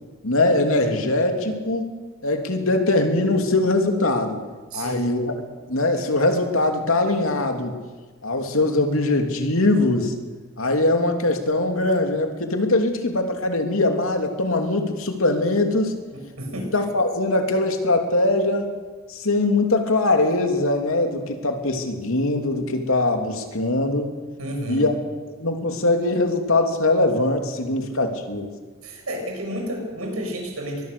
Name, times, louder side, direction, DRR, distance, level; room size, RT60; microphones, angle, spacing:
voice 1, 0.2-2.0 2.2-4.4 4.7-5.3 5.7-7.8 8.2-10.1 10.6-15.9 16.7-18.7 19.1-24.1 24.7-24.9 25.4-28.5, left 2 dB, 70° left, 5 dB, 3.0 m, -21 dB
voice 2, 4.7-5.1 16.4-16.7 24.4-24.9 27.6-27.8 28.8-30.9, equal, 80° right, 1 dB, 7.4 m, -31 dB
23.0 x 22.0 x 7.0 m, 1.3 s
head